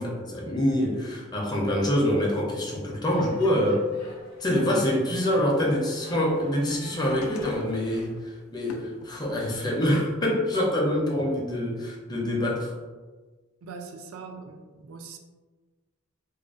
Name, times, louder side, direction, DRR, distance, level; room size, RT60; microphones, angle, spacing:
voice 1, 0.0-3.9 4.4-12.7, left 1 dB, 20° left, -3 dB, 0.4 m, -25 dB
sound 1, 3.1-8.1, left 1 dB, 50° left, 0.8 m, -48 dB
sound 2, 6.9-9.9 10.4-11.6 12.6-12.7, left 3 dB, 85° left, 0.3 m, -45 dB
voice 2, 13.6-15.2, right 4 dB, 80° right, 4 dB, 0.3 m, -41 dB
2.4 x 2.2 x 2.3 m, 1.3 s
head